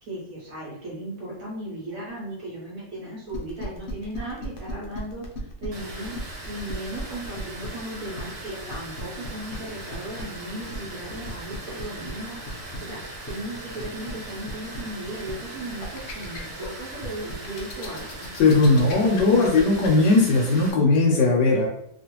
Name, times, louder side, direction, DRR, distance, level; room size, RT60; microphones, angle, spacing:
voice 1, 0.0-5.2 5.6-18.3 18.6-19.3, right 1 dB, 60° right, -6 dB, 1.1 m, -36 dB
sound 1, 3.3-19.9, left 1 dB, 90° left, 0.6 m, -38 dB
Water, 5.7-20.7, right 1 dB, 75° right, 1.5 m, -40 dB
voice 2, 18.4-21.7, left 3 dB, 75° left, -1 dB, 1.2 m, -18 dB
3.0 x 2.4 x 2.9 m, 0.73 s
omnidirectional pair, 2.0 m